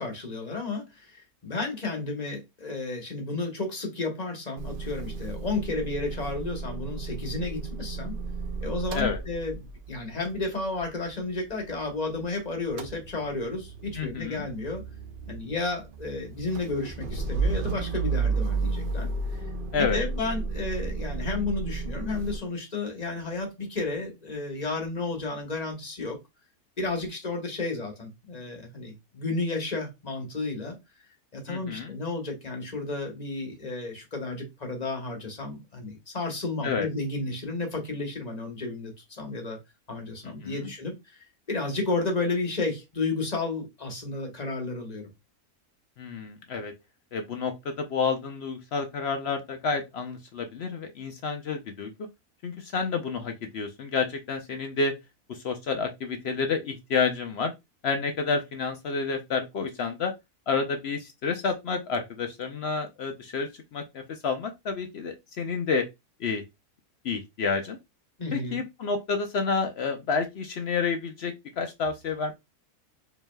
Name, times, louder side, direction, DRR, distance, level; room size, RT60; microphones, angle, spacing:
voice 1, 0.0-8.2 8.6-9.6 9.9-14.8 15.3-19.4 19.7-26.2 26.8-30.8 31.3-39.6 39.9-41.2 41.5-45.1 68.2-68.6, left 3 dB, 30° left, 1.0 m, -32 dB
Motor vehicle (road) / Engine starting / Idling, 4.6-12.3 12.5-22.4, right 4 dB, 70° right, 0.5 m, -33 dB
voice 2, 14.0-14.4 19.7-20.0 31.5-31.9 36.6-36.9 40.4-40.6 46.0-46.7 47.1-51.9 52.4-54.9 55.3-57.5 57.8-60.1 60.5-65.9 66.2-66.4 67.0-67.8 68.3-72.3, left 5 dB, 70° left, 0.6 m, -29 dB
5.0 x 3.1 x 2.2 m
omnidirectional pair, 1.6 m